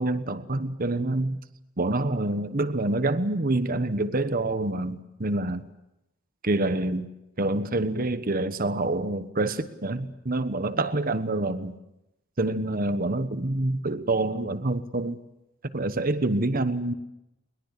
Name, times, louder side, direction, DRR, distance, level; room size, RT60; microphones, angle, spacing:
voice 1, 0.0-1.4 1.8-5.6 6.4-7.1 7.4-11.7 12.4-15.2 15.7-16.9, right 2 dB, 45° right, 11 dB, 1.2 m, -27 dB
22.5 x 21.0 x 8.3 m, 0.87 s
head